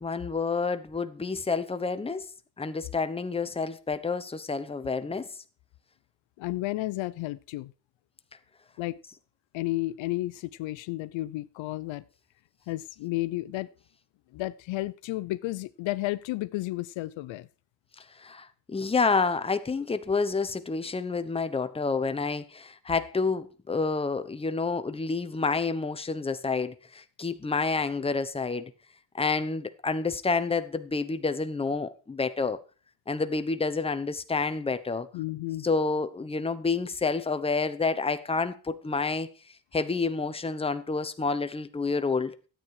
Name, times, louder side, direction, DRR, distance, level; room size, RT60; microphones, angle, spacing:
voice 1, 0.0-2.3 2.6-5.3 18.2-28.7 29.1-32.6 33.1-35.1 35.6-39.3 39.7-42.4, left 4 dB, 10° left, 0.9 m, -29 dB
voice 2, 6.4-7.7 8.8-9.0 9.5-12.0 12.7-13.7 14.3-17.5 35.1-35.7, left 18 dB, 80° left, 0.7 m, -32 dB
12.5 x 8.9 x 4.8 m
cardioid pair, 105°, 46 cm